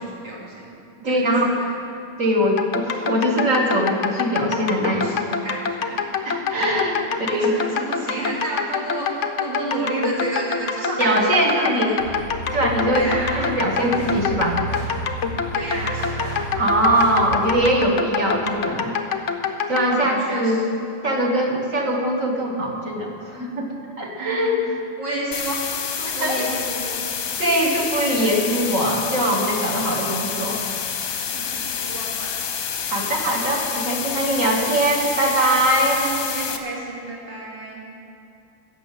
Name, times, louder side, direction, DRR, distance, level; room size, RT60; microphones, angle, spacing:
voice 1, 0.0-1.5 4.8-6.0 6.6-12.3 12.9-13.6 15.5-16.5 19.8-20.6 24.2-24.6 25.0-25.6 26.0-27.0 31.3-32.3 35.9-37.8, right 2 dB, 55° right, -4 dB, 3.4 m, -31 dB
voice 2, 1.0-1.5 2.2-5.1 6.2-7.6 11.0-11.9 12.5-14.6 16.6-18.9 19.7-20.6 21.0-23.7 24.0-24.7 26.2-26.4 27.4-30.6 32.8-36.1, right 1 dB, 40° right, -1 dB, 2.0 m, -21 dB
sound 1, 2.6-19.9, left 6 dB, 75° left, 0.6 m, -26 dB
sound 2, 12.0-17.6, right 2 dB, 85° right, 2.7 m, -32 dB
sound 3, 25.3-36.6, left 7 dB, 55° left, 1.1 m, -28 dB
14.5 x 7.2 x 9.1 m, 2.7 s
omnidirectional pair, 2.3 m